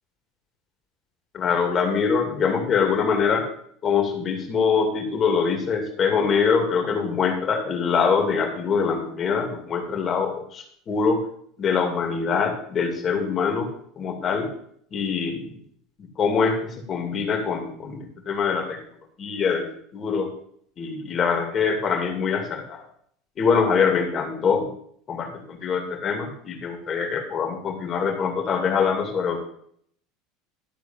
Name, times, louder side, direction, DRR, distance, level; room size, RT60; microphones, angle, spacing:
voice 1, 1.3-3.4 3.8-11.2 11.6-13.7 14.0-14.5 14.9-15.5 16.0-18.8 19.2-19.6 19.9-20.3 20.8-22.8 23.4-24.7 25.1-29.4, left 5 dB, 40° left, 3 dB, 2.5 m, -24 dB
12.5 x 4.4 x 7.2 m, 0.65 s
supercardioid pair, 100°, 0 cm